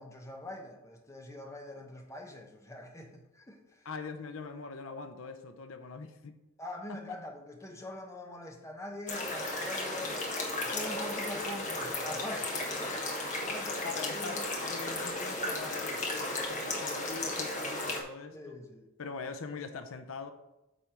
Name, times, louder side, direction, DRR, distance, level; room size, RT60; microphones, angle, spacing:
voice 1, 0.0-3.9 6.6-10.2 10.6-13.1 13.5-14.5 18.3-18.9, left 1 dB, 15° left, 0.8 m, -44 dB
voice 2, 3.8-6.3 6.9-7.0 13.8-14.4 14.7-18.6 19.0-20.3, left 4 dB, 70° left, 0.6 m, -42 dB
sound 1, 9.1-18.0, left 2 dB, 35° left, 1.3 m, -34 dB
8.8 x 3.4 x 5.8 m
head